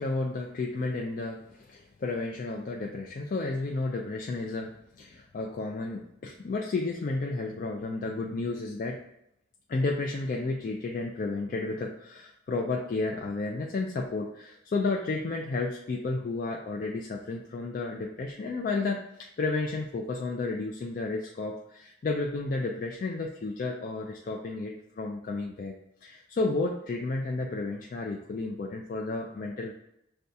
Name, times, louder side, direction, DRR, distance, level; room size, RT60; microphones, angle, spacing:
voice 1, 0.0-9.0 9.7-25.7 26.0-29.7, left 3 dB, 45° left, 1 dB, 0.3 m, -32 dB
6.5 x 2.3 x 2.7 m, 0.79 s
head